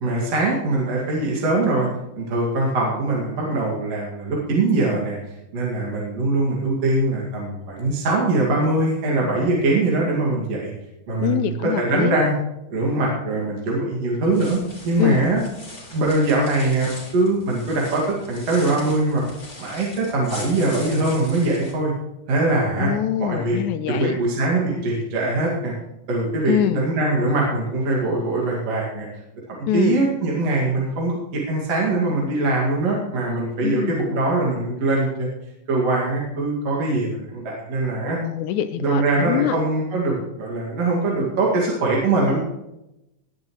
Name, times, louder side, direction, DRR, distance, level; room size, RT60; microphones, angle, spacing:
voice 1, 0.0-1.9 2.2-5.2 5.5-10.7 11.1-12.3 12.7-14.6 14.8-15.4 15.9-18.0 18.3-19.2 19.6-21.9 22.3-22.9 23.2-23.6 23.9-25.7 26.1-29.1 29.5-35.3 35.7-38.2 38.8-42.4, right 2 dB, 50° right, -4 dB, 3.0 m, -22 dB
voice 2, 11.2-12.2 15.0-15.3 22.8-24.2 26.5-26.8 29.7-30.0 33.6-34.0 38.2-39.5, left 11 dB, 80° left, 11 dB, 1.7 m, -24 dB
sound 1, 14.2-21.7, left 2 dB, 20° left, 3.1 m, -41 dB
19.0 x 10.5 x 3.1 m, 0.90 s
omnidirectional pair, 3.9 m